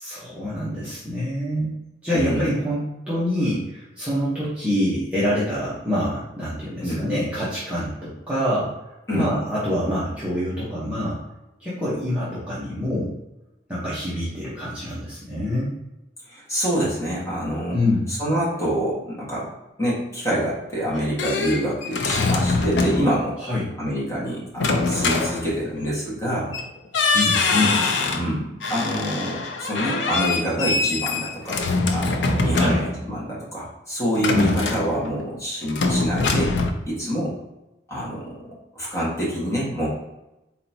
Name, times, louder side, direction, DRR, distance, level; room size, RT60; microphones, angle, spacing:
voice 1, 0.0-1.8 2.0-8.7 9.1-11.2 11.6-13.1 13.7-15.7 17.7-18.1 23.4-23.7 27.1-27.8 32.5-32.8 34.3-34.6, left 1 dB, 5° right, -11 dB, 1.0 m, -25 dB
voice 2, 2.1-2.5 6.8-7.0 9.1-9.3 16.3-17.8 18.1-19.5 19.8-23.4 23.8-26.5 28.1-31.6 31.9-36.6 36.9-37.3 37.9-38.4 38.7-39.9, equal, 15° left, -7 dB, 1.5 m, -26 dB
sound 1, 20.7-23.2 24.6-25.9 26.5-26.7 26.9-28.3 28.6-33.1 34.2-35.3 35.7-36.7, left 3 dB, 80° left, 0.5 m, -23 dB
4.2 x 3.9 x 2.8 m, 0.94 s
head